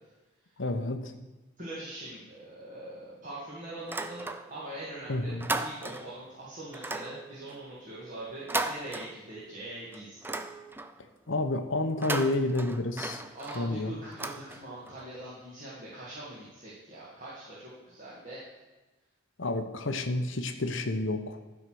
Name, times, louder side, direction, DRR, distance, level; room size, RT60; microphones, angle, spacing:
voice 1, 0.6-1.1 5.1-5.5 11.3-13.2 13.5-13.9 19.4-21.4, left 2 dB, 65° left, 6 dB, 0.9 m, -30 dB
voice 2, 1.6-10.2 13.3-18.4, right 1 dB, 40° right, -8 dB, 2.1 m, -42 dB
sound 1, 3.8-4.8 5.1-6.2 6.7-9.6 9.9-11.1 11.9-15.0, right 2 dB, 10° right, 0.3 m, -36 dB
12.5 x 4.8 x 6.3 m, 1.2 s
head